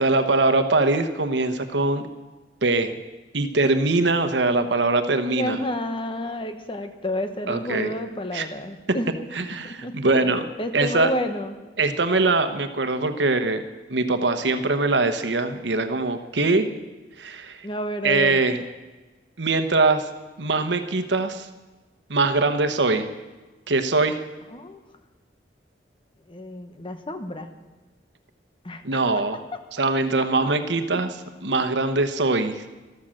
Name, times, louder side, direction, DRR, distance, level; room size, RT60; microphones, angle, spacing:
voice 1, 0.0-2.1 2.6-3.0 3.3-5.6 7.5-7.9 8.3-8.5 9.3-10.4 10.7-11.1 11.8-13.6 13.9-16.7 17.2-17.6 18.0-18.6 19.4-20.1 20.4-21.5 22.1-23.1 23.7-24.2 28.8-29.4 29.7-31.1 31.4-32.6, right 3 dB, 80° right, 9 dB, 1.1 m, -22 dB
voice 2, 5.4-9.1 9.6-11.6 17.6-18.4 24.5-24.8 26.3-27.5 28.6-28.8 30.9-31.0, left 1 dB, 30° left, 8 dB, 1.1 m, -30 dB
13.5 x 13.0 x 6.5 m, 1.2 s
head